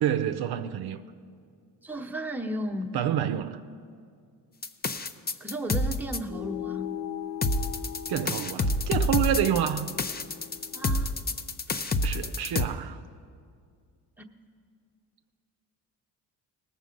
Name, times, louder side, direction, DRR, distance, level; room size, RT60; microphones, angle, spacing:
voice 1, 0.0-1.0 2.9-3.6 8.1-9.9 12.0-13.0, right 10 dB, 70° right, 0.6 m, -28 dB
voice 2, 1.8-3.0 5.4-6.9 10.7-11.1 11.7-11.9, right 1 dB, 5° right, 1.0 m, -34 dB
sound 1, 4.6-6.2 7.4-12.7, left 2 dB, 25° left, 0.6 m, -28 dB
sound 2, 6.3-11.1, left 11 dB, 85° left, 0.7 m, -39 dB
19.0 x 6.9 x 5.2 m
cardioid pair, 70°, 41 cm